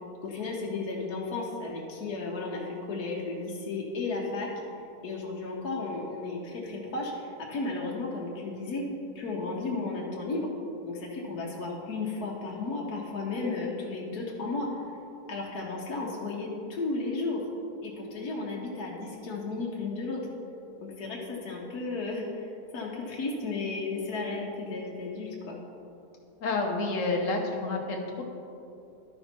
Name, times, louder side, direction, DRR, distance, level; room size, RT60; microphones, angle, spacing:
voice 1, 0.2-4.5 5.0-8.8 9.1-10.5 10.9-14.7 15.3-17.4 17.8-20.2 20.8-25.6, left 3 dB, 75° left, -3 dB, 1.5 m, -34 dB
voice 2, 26.4-28.2, left 3 dB, 60° left, 1 dB, 1.4 m, -29 dB
12.0 x 5.6 x 4.4 m, 2.8 s
omnidirectional pair, 1.6 m